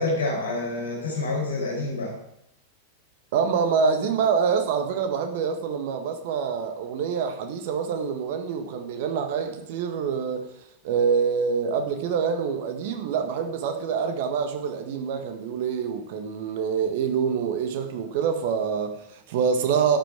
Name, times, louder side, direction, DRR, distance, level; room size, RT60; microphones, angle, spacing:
voice 1, 0.0-2.2, left 2 dB, 70° left, -2 dB, 5.2 m, -27 dB
voice 2, 3.3-10.5 10.8-20.0, right 6 dB, 50° right, 6 dB, 1.7 m, -26 dB
12.5 x 8.7 x 5.0 m, 0.77 s
figure-of-eight pair, 90°, 0 cm